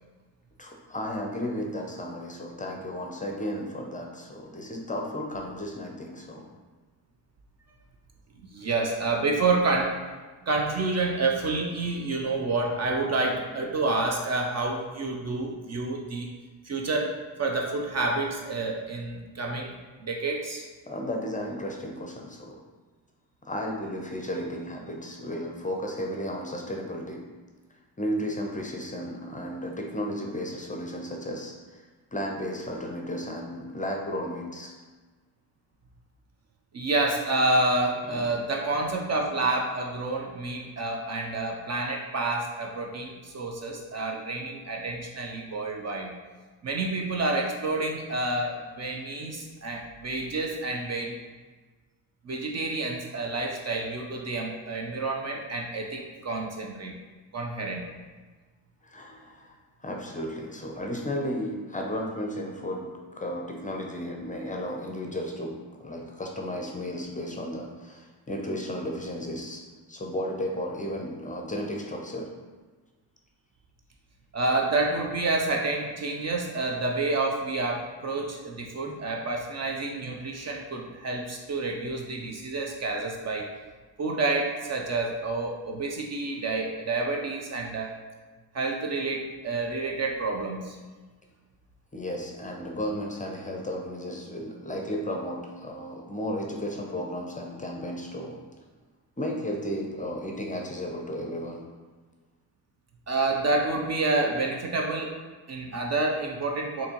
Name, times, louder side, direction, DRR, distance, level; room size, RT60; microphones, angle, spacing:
voice 1, 0.6-6.5 20.9-22.6 23.4-27.2 28.0-34.7 38.0-38.4 58.8-69.6 69.9-72.3 78.9-79.0 91.9-98.4 99.2-101.7, equal, 15° left, 1 dB, 0.6 m, -34 dB
voice 2, 8.5-10.0 10.5-16.3 16.6-20.6 36.7-46.2 46.6-51.2 52.2-57.0 57.3-57.9 74.3-83.5 84.0-87.9 88.5-90.8 103.1-105.2 105.5-106.9, right 3 dB, 35° right, 1 dB, 0.5 m, -29 dB
4.1 x 2.8 x 2.9 m, 1.3 s
supercardioid pair, 60°, 46 cm